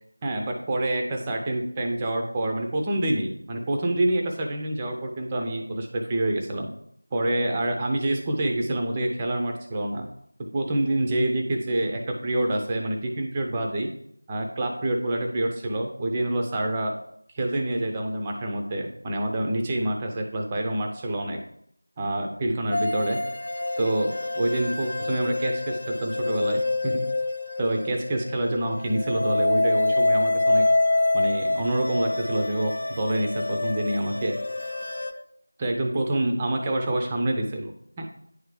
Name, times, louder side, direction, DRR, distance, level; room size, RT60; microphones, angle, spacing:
voice 1, 0.2-6.7 7.1-10.1 10.5-13.9 14.3-16.9 17.3-21.4 22.0-23.2 23.8-27.0 27.6-30.6 31.1-34.4 35.6-37.7 38.0-38.1, right 1 dB, 15° right, 2 dB, 0.5 m, -27 dB
sound 1, 22.7-35.1, left 2 dB, 40° left, 0.6 m, -26 dB
9.1 x 3.3 x 4.9 m, 0.71 s
figure-of-eight pair, 170°, 0 cm